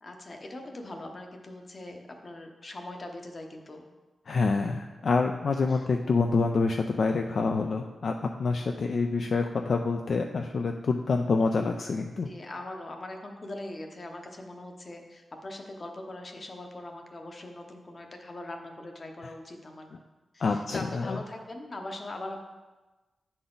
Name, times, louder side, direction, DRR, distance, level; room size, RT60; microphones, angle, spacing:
voice 1, 0.0-3.8 5.7-5.9 12.2-19.9 20.3-22.4, left 1 dB, 35° left, 3 dB, 0.8 m, -41 dB
voice 2, 4.3-8.1 8.4-12.3 20.4-21.2, left 4 dB, 60° left, 4 dB, 0.3 m, -27 dB
9.6 x 4.0 x 3.9 m, 1.2 s
wide cardioid pair, 130°, 0 cm